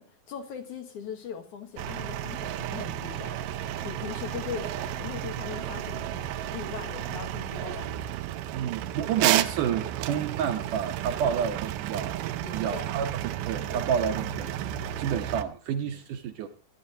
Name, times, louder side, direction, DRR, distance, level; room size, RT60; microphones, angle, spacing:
voice 1, 0.0-7.9 12.4-13.0 13.7-13.9, left 8 dB, 65° left, 2.4 m, -40 dB
sound 1, 1.8-15.4, right 12 dB, 90° right, 2.6 m, -32 dB
voice 2, 8.5-12.2 12.5-16.5, right 8 dB, 70° right, 2.1 m, -30 dB
19.5 x 11.0 x 2.7 m
omnidirectional pair, 4.3 m